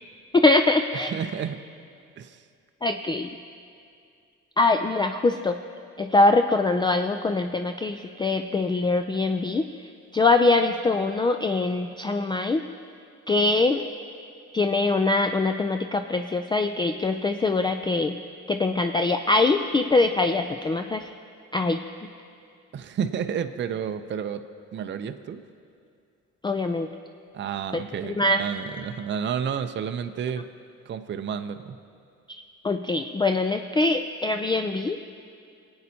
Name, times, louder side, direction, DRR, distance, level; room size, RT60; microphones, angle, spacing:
voice 1, 0.3-1.1 2.8-3.3 4.6-5.6 6.0-9.7 10.1-12.6 13.3-13.8 14.5-18.2 18.5-21.0 21.5-21.8 26.4-26.9 27.7-28.4 32.3-35.0, left 3 dB, 15° left, 6 dB, 0.3 m, -23 dB
voice 2, 0.9-1.6 2.2-2.4 22.7-24.4 24.7-25.4 27.3-30.5 30.9-31.8, right 7 dB, 40° right, 8 dB, 0.5 m, -31 dB
26.0 x 8.6 x 2.8 m, 2.4 s
cardioid pair, 90°, 30 cm